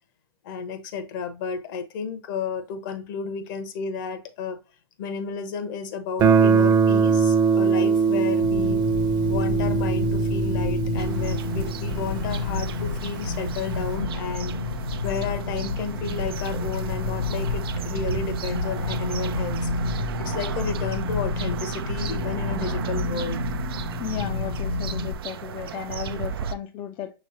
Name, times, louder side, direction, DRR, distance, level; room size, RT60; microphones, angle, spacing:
voice 1, 0.4-4.6 5.0-8.8 9.3-14.6 15.0-19.7 20.2-23.4, left 6 dB, 60° left, 1.0 m, -32 dB
Guitar, 6.2-12.9, right 5 dB, 35° right, 0.7 m, -22 dB
sound 1, 8.4-25.1, left 3 dB, 85° left, 0.6 m, -30 dB
sound 2, 11.0-26.5, right 9 dB, 75° right, 0.4 m, -35 dB
voice 2, 24.0-27.1, left 9 dB, 40° left, 0.5 m, -34 dB
6.1 x 3.1 x 2.7 m
hypercardioid pair, 105°, 12 cm